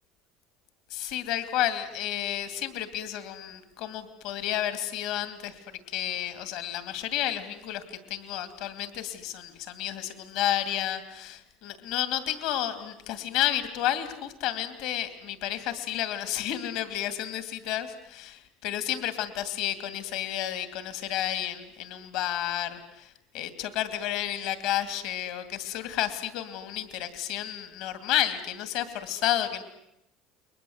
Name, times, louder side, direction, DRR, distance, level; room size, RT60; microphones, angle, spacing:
voice 1, 0.9-29.6, left 12 dB, 70° left, 10 dB, 2.6 m, -31 dB
30.0 x 22.5 x 8.0 m, 0.84 s
supercardioid pair, 120°, 0 cm